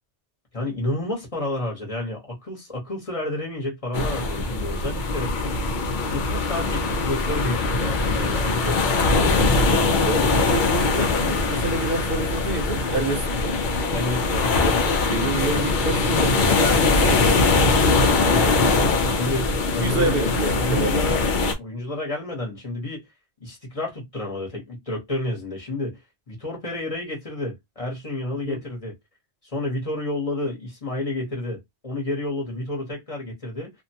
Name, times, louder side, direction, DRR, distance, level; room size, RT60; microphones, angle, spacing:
voice 1, 0.5-5.3 6.1-10.6 13.9-14.5 18.3-20.2 20.6-21.2 21.6-23.0 23.4-26.0 26.3-29.0 29.4-33.7, left 2 dB, 35° left, 1.0 m, -30 dB
sound 1, 3.9-21.5, left 3 dB, 55° left, 0.7 m, -22 dB
voice 2, 10.0-13.7 15.0-18.2 19.8-21.2 28.4-28.6, right 2 dB, 60° right, 1.0 m, -28 dB
2.6 x 2.1 x 2.7 m
omnidirectional pair, 1.1 m